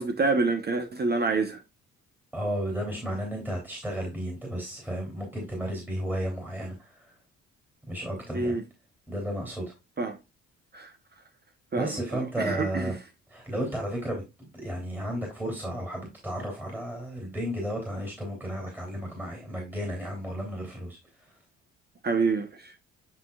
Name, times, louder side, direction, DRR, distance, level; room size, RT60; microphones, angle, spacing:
voice 1, 0.0-1.6 8.3-8.6 10.0-10.2 10.7-10.9 11.7-12.9 22.0-22.7, right 3 dB, 35° right, 1.0 m, -27 dB
voice 2, 2.3-7.1 7.9-8.6 9.1-9.7 11.7-12.9 13.3-21.0 21.3-21.4, equal, 5° right, 3.1 m, -33 dB
10.0 x 4.0 x 2.4 m
cardioid pair, 90°, 30 cm